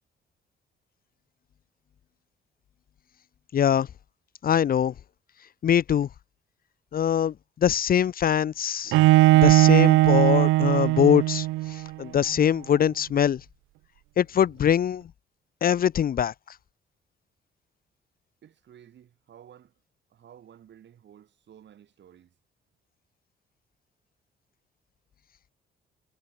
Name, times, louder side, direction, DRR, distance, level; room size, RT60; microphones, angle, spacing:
voice 1, 3.5-3.9 4.4-4.9 5.6-6.1 6.9-8.9 9.3-13.4 14.2-15.1 15.6-16.3, left 9 dB, 50° left, 0.7 m, -23 dB
Bowed string instrument, 8.9-11.9, right 19 dB, 90° right, 0.5 m, -18 dB
voice 2, 18.4-19.7 20.1-22.3, right 9 dB, 65° right, 6.5 m, -53 dB
cardioid pair, 90°, 20 cm